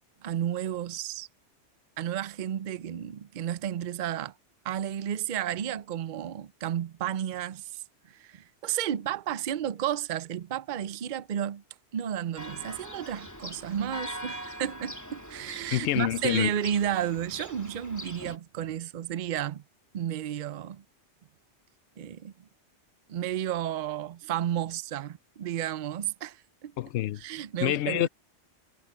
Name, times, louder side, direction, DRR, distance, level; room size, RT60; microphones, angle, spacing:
voice 1, 0.2-1.3 2.0-4.3 4.6-11.6 11.9-19.6 19.9-20.8 22.0-22.3 23.1-26.7 27.2-28.1, right 10 dB, 50° right, 0.7 m, -32 dB
Church bell, 12.4-18.4, equal, 15° left, 2.8 m, -42 dB
voice 2, 15.7-16.5 26.8-27.2 27.6-28.1, left 13 dB, 75° left, 0.9 m, -27 dB
omnidirectional pair, 1.2 m